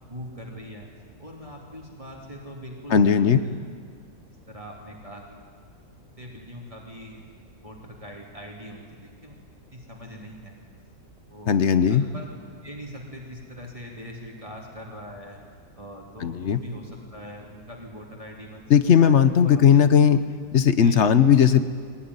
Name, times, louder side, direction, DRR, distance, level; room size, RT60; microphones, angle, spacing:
voice 1, 0.0-0.9 1.2-3.6 4.5-5.4 6.2-7.2 7.6-9.4 9.7-10.6 11.3-11.5 11.9-12.3 12.6-15.4 15.8-18.7 18.9-19.2 19.4-19.8 20.8-21.3, equal, 20° right, -2 dB, 3.0 m, -42 dB
voice 2, 2.9-3.4 11.5-12.0 16.2-16.6 18.7-20.2 20.5-21.6, left 8 dB, 50° left, 12 dB, 1.0 m, -17 dB
21.5 x 18.0 x 9.7 m, 2.1 s
omnidirectional pair, 1.8 m